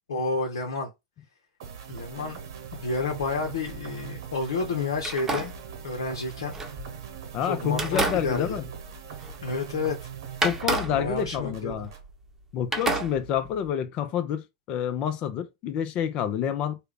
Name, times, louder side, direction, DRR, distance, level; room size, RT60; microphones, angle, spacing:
voice 1, 0.1-0.9 1.9-2.4 2.7-5.5 5.8-6.5 7.5-8.6 9.4-10.0 10.9-11.7, left 3 dB, 80° left, 0.8 m, -30 dB
sound 1, 1.6-12.1, right 8 dB, 70° right, 0.9 m, -41 dB
sound 2, 2.9-4.1 5.0-7.2 7.7-9.6 9.9-10.0 10.4-12.4 12.7-13.7, right 2 dB, 15° right, 0.9 m, -32 dB
voice 2, 7.3-8.7 10.4-11.9 12.5-16.8, left 9 dB, 45° left, 0.6 m, -28 dB
3.4 x 2.2 x 3.5 m
hypercardioid pair, 100°, 2 cm